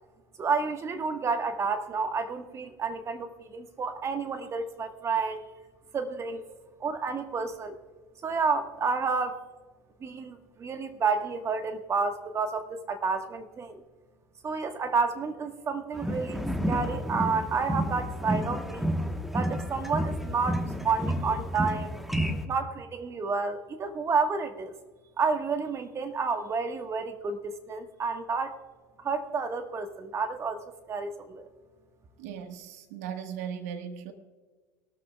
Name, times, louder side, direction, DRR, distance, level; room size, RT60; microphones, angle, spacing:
voice 1, 0.4-5.4 5.9-6.5 6.8-7.7 8.2-9.4 10.0-13.8 14.4-18.9 19.3-21.9 22.5-24.7 25.2-28.6 29.0-31.4, right 4 dB, 35° right, 1.4 m, -30 dB
sound 1, 15.9-22.5, equal, 5° right, 1.2 m, -30 dB
voice 2, 32.2-34.1, right 8 dB, 75° right, 1.5 m, -38 dB
22.5 x 13.0 x 2.3 m
hypercardioid pair, 85°, 9 cm